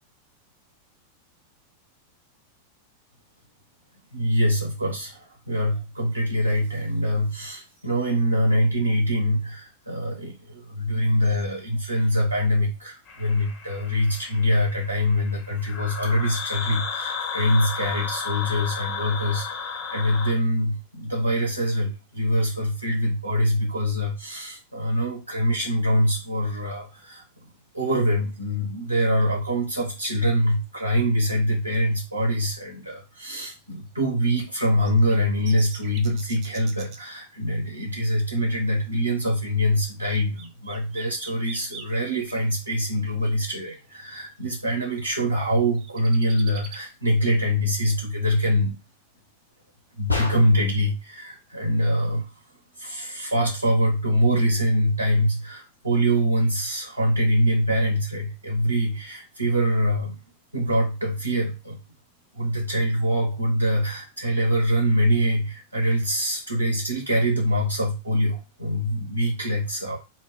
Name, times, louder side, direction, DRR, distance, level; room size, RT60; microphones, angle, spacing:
voice 1, 4.1-27.2 27.7-48.7 50.0-52.2 52.8-60.2 60.5-61.8 62.3-70.0, equal, 80° right, 0 dB, 0.6 m, -24 dB
sound 1, 13.1-20.3, left 6 dB, 40° left, 0.7 m, -33 dB
sound 2, 30.0-30.1 34.1-34.2 34.8-37.0 40.1-42.6 43.7-43.8 44.2-44.3 45.5-46.8, right 5 dB, 35° right, 0.5 m, -42 dB
sound 3, 50.1-50.8, left 3 dB, 85° left, 0.5 m, -28 dB
2.2 x 2.0 x 3.5 m, 0.30 s
figure-of-eight pair, 90°, 0 cm